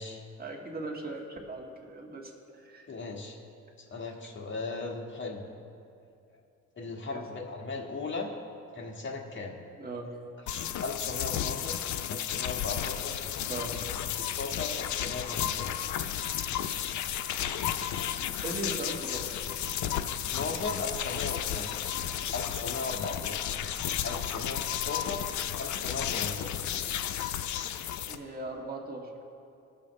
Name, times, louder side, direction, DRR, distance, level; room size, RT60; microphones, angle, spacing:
voice 1, 0.4-2.9 7.1-7.2 9.8-10.1 13.5-13.8 18.4-19.4 28.1-29.1, right 2 dB, 30° right, 0 dB, 1.8 m, -38 dB
voice 2, 2.9-3.4 3.9-5.4 6.8-8.3 8.7-9.6 10.5-11.8 12.1-13.2 14.1-15.8 17.5-18.1 20.3-21.8 22.3-23.4 24.0-25.2 25.6-26.6, left 3 dB, 40° left, 0 dB, 1.5 m, -37 dB
sound 1, 10.5-28.2, left 10 dB, 70° left, 0.6 m, -33 dB
sound 2, 14.5-26.2, left 2 dB, 20° left, 1.5 m, -51 dB
19.0 x 6.9 x 3.2 m, 2.5 s
cardioid pair, 90°, 30 cm